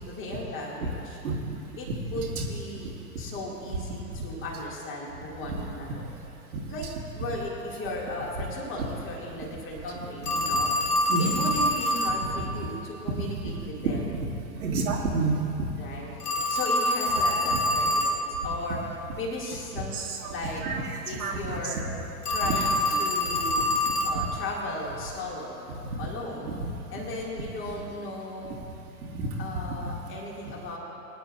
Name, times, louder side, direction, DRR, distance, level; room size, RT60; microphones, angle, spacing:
voice 1, 0.1-1.2 1.8-6.1 6.7-6.9 7.1-10.8 11.2-14.2 15.8-16.1 16.5-18.8 19.2-19.9 20.2-20.6 21.0-21.9 22.3-23.7 24.0-25.6 26.0-26.5 26.9-28.7 29.4-30.8, left 1 dB, 25° left, -3 dB, 2.4 m, -36 dB
Telephone, 10.3-12.2 16.2-18.2 22.2-24.2, left 1 dB, 70° left, 1.5 m, -25 dB
voice 2, 11.1-11.6 12.4-12.5 13.8-14.2 14.6-15.5 17.8-17.9 19.9-20.3 20.6-21.6 26.5-27.0 29.1-29.3, right 3 dB, 60° right, -1 dB, 1.9 m, -29 dB
21.5 x 10.0 x 2.6 m, 2.8 s
figure-of-eight pair, 100°, 48 cm